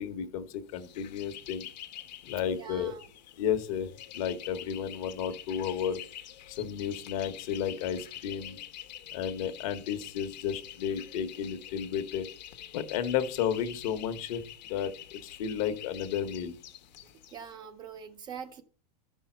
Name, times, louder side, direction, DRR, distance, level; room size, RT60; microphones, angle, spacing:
voice 1, 0.0-1.7 2.2-2.9 3.4-3.9 4.1-6.0 6.5-8.6 9.1-12.3 12.7-16.6, left 8 dB, 55° left, 1.1 m, -32 dB
sound 1, 0.7-17.4, left 12 dB, 90° left, 1.1 m, -47 dB
voice 2, 2.5-3.1 17.3-18.6, right 7 dB, 20° right, 0.5 m, -43 dB
13.0 x 5.5 x 4.3 m
supercardioid pair, 160°, 21 cm